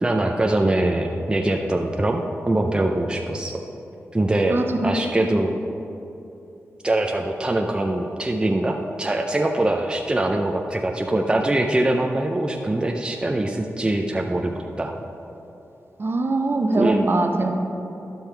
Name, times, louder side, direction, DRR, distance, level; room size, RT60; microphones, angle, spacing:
voice 1, 0.0-3.6 4.1-5.5 6.8-14.9 16.8-17.0, right 1 dB, 15° right, 2 dB, 0.5 m, -23 dB
voice 2, 4.5-4.9 5.2-5.4 16.0-17.5, right 2 dB, 45° right, 4 dB, 0.9 m, -22 dB
12.0 x 5.4 x 4.5 m, 2.9 s
cardioid pair, 75°, 5 cm